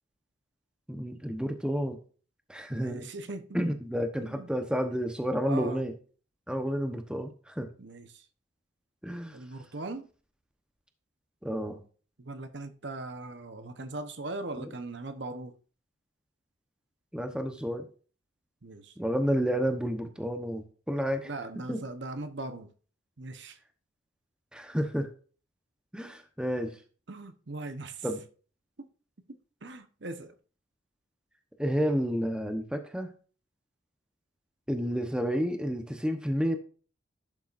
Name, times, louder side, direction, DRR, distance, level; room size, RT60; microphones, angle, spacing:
voice 1, 0.9-2.0 2.5-3.1 3.5-5.9 6.5-7.7 9.0-9.4 11.4-11.8 14.6-14.7 17.1-17.9 19.0-21.3 21.7-21.8 24.5-25.1 25.9-26.8 28.0-28.2 31.6-33.1 34.7-36.6, equal, 5° right, 0.9 m, -30 dB
voice 2, 2.7-3.6 4.2-4.5 5.4-5.8 7.8-8.3 9.3-10.1 12.2-15.6 18.6-18.9 21.2-22.7 23.2-23.6 27.1-28.1 28.8-28.9 29.3-30.3, right 2 dB, 55° right, 0.9 m, -40 dB
11.5 x 6.9 x 2.6 m
head